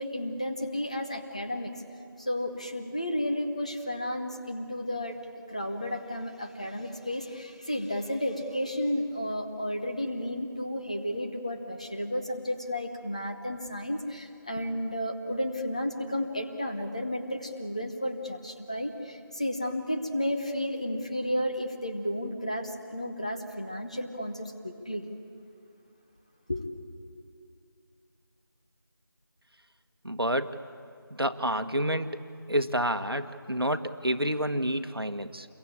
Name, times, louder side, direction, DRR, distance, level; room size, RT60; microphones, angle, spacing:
voice 1, 0.0-1.7 2.2-5.2 5.5-25.1 26.5-26.7, left 1 dB, 15° left, 4 dB, 1.0 m, -32 dB
voice 2, 30.0-30.6 31.1-32.2 32.5-35.5, equal, 90° right, 8 dB, 1.6 m, -29 dB
28.5 x 22.5 x 8.7 m, 2.4 s
figure-of-eight pair, 170°, 12 cm